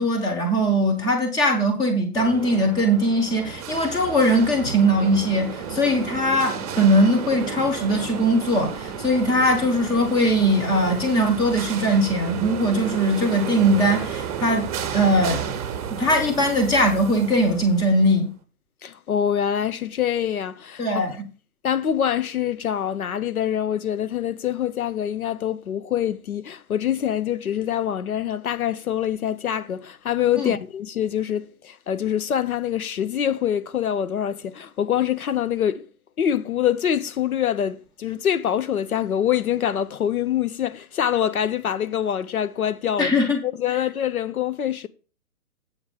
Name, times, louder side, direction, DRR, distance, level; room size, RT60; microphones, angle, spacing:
voice 1, 0.0-14.6 14.9-15.4 15.9-18.3 20.8-21.3 30.3-30.5 43.0-43.4, equal, 10° left, 1.2 m, -20 dB
sound 1, 2.2-18.2, right 7 dB, 25° right, 1.1 m, -33 dB
voice 2, 18.8-20.9 21.6-35.9 36.2-43.2 43.4-44.9, left 9 dB, 70° left, 0.8 m, -25 dB
8.2 x 4.8 x 7.2 m
hypercardioid pair, 150°, 45 cm